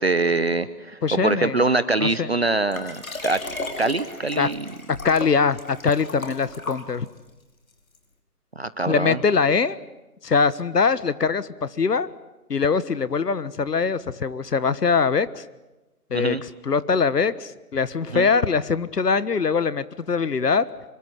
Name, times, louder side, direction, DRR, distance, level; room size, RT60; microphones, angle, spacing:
voice 1, 0.0-3.4 3.8-4.6 8.6-9.2 16.1-16.4 18.1-18.3, right 3 dB, 40° right, 13 dB, 0.9 m, -24 dB
voice 2, 1.0-1.6 2.0-2.3 4.4-4.5 5.0-7.1 8.9-9.8 10.2-12.1 12.5-15.4 16.1-20.6, left 5 dB, 80° left, 17 dB, 1.5 m, -22 dB
Liquid, 2.7-7.3 7.9-8.0, left 2 dB, 60° left, 5.3 m, -35 dB
25.0 x 23.0 x 9.9 m, 1.1 s
hypercardioid pair, 175°, 47 cm